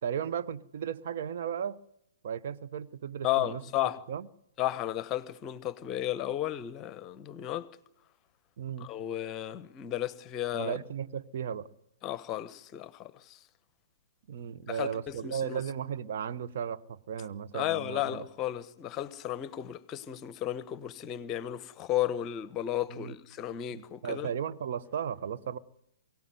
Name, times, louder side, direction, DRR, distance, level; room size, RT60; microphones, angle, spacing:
voice 1, 0.0-1.8 2.2-3.6 4.1-4.3 8.6-8.9 10.5-11.7 14.3-18.3 22.9-23.1 23.7-25.6, right 8 dB, 50° right, 1.1 m, -35 dB
voice 2, 3.2-4.0 4.6-7.7 8.8-10.8 12.0-13.4 14.7-15.6 17.5-24.3, left 12 dB, 25° left, 1.1 m, -34 dB
23.5 x 17.5 x 9.5 m
figure-of-eight pair, 120°, 0 cm